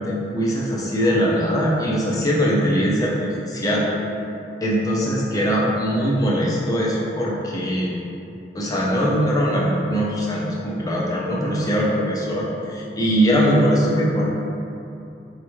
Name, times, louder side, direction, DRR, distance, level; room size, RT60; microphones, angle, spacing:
voice 1, 0.0-3.9 4.6-7.9 8.5-14.3, equal, 20° left, -5 dB, 0.5 m, -21 dB
4.2 x 2.4 x 3.0 m, 2.7 s
head